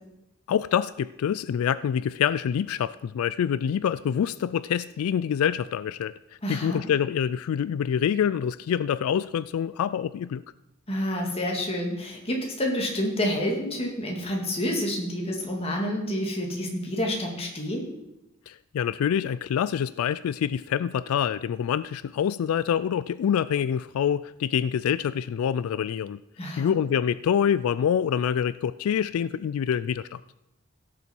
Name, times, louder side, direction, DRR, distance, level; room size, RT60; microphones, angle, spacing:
voice 1, 0.5-6.1 6.5-10.4 18.5-26.2 26.6-30.2, left 8 dB, 90° left, 17 dB, 0.3 m, -26 dB
voice 2, 6.4-6.8 10.9-17.9 26.4-26.7, equal, 30° left, 0 dB, 2.2 m, -28 dB
16.5 x 6.9 x 4.5 m, 0.89 s
head